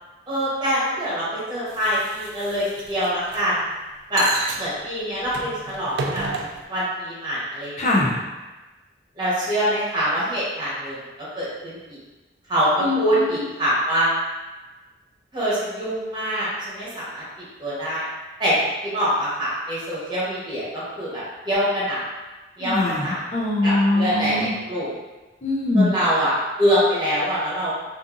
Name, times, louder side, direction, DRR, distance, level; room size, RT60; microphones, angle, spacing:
voice 1, 0.3-3.6 4.1-4.3 4.6-6.2 6.7-7.8 9.2-11.0 11.4-12.0 12.5-14.1 15.3-17.2 17.6-18.0 18.4-22.0 22.6-23.2 23.6-24.9 25.7-27.7, equal, 25° right, -9 dB, 1.0 m, -24 dB
sound 1, 1.7-3.4 4.2-4.7 5.2-6.6, right 3 dB, 85° right, 0.3 m, -32 dB
voice 2, 7.8-8.2 12.8-13.4 22.6-24.5 25.4-25.9, left 2 dB, 40° left, -3 dB, 0.4 m, -22 dB
2.6 x 2.6 x 2.5 m, 1.2 s
head